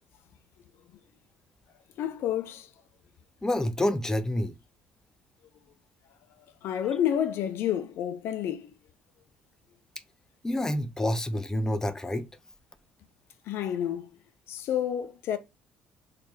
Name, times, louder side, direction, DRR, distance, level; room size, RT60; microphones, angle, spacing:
voice 1, 2.0-2.7 6.6-8.7 13.5-14.1 14.5-15.4, left 10 dB, 55° left, 0.6 m, -29 dB
voice 2, 3.4-4.5 10.4-12.3, left 1 dB, 10° left, 0.5 m, -28 dB
4.2 x 2.7 x 3.2 m
figure-of-eight pair, 50°, 5 cm